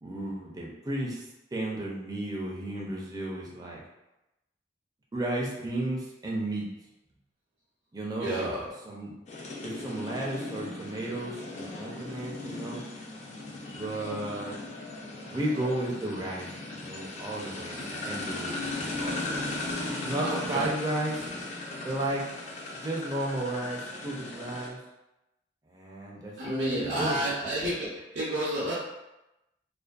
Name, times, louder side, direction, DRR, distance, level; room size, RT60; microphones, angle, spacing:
voice 1, 0.0-3.8 5.1-6.7 7.9-8.5 8.8-9.1 9.6-12.8 13.7-14.6 15.3-19.5 20.0-21.2 21.8-22.3 22.8-24.8 25.7-27.2, right 1 dB, 20° right, -3 dB, 0.4 m, -33 dB
voice 2, 8.2-8.7 19.0-19.7 20.2-20.7 26.4-28.7, right 1 dB, 70° right, -7 dB, 0.5 m, -31 dB
sound 1, 9.3-24.7, left 2 dB, 40° left, 0.4 m, -37 dB
2.5 x 2.2 x 2.2 m, 0.94 s
head